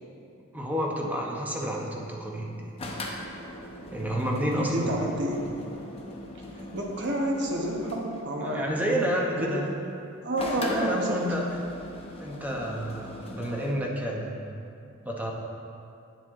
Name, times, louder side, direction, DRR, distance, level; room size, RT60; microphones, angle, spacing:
voice 1, 0.5-2.5 2.8-2.9 3.9-5.0 8.4-9.7 10.6-11.5 12.2-14.4 15.0-15.3, equal, 5° right, -2 dB, 0.9 m, -30 dB
sound 1, 2.8-8.2 10.4-13.7, left 1 dB, 25° left, 0.7 m, -40 dB
voice 2, 4.0-5.5 6.5-8.8 9.4-9.7 10.2-11.2, right 1 dB, 50° right, -1 dB, 1.1 m, -30 dB
8.3 x 7.6 x 3.7 m, 2.6 s
head